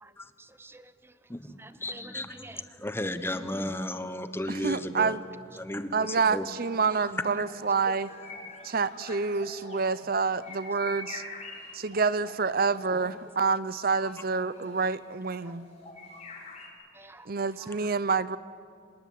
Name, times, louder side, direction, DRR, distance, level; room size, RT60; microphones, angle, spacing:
voice 1, 0.4-1.1 1.6-2.9 6.9-7.0 10.8-10.9 14.0-14.1 15.4-15.5 16.9-17.3 17.6-17.8, right 2 dB, 15° right, 13 dB, 0.9 m, -50 dB
voice 2, 1.3-5.2 5.6-6.5 7.3-7.4, left 1 dB, 15° left, 10 dB, 1.1 m, -34 dB
voice 3, 4.5-5.2 5.9-8.1 8.6-11.2 11.7-15.6 17.3-18.4, right 4 dB, 55° right, 16 dB, 0.6 m, -28 dB
sound 1, 6.1-16.7, left 3 dB, 35° left, 4.9 m, -47 dB
25.0 x 21.0 x 9.4 m, 2.3 s
head